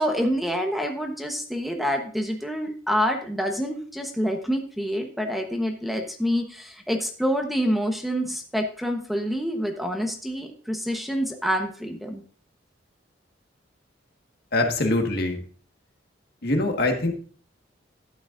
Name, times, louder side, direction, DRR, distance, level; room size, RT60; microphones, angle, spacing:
voice 1, 0.0-12.2, equal, ahead, 3 dB, 1.1 m, -27 dB
voice 2, 14.5-15.4 16.4-17.1, left 2 dB, 55° left, 3 dB, 1.6 m, -23 dB
12.5 x 9.0 x 2.6 m, 0.43 s
head